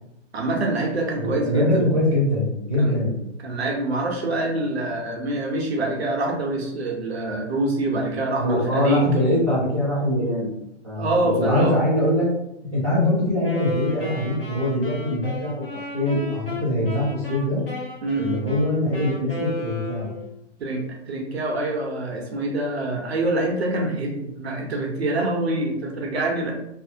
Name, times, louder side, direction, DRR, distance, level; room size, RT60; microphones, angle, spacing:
voice 1, 0.3-1.8 2.8-3.0 3.4-9.3 11.0-11.8 18.0-18.5 20.6-20.8 21.1-26.5, right 2 dB, 60° right, 0 dB, 0.7 m, -25 dB
voice 2, 1.2-3.2 8.4-10.5 10.8-12.3 12.6-15.7 15.9-17.6 18.2-20.1, left 1 dB, 25° right, -13 dB, 0.4 m, -23 dB
Wind instrument woodwind instrument, 13.4-20.4, left 2 dB, 50° left, 0.9 m, -35 dB
2.4 x 2.0 x 2.6 m, 0.83 s
hypercardioid pair, 175°, 36 cm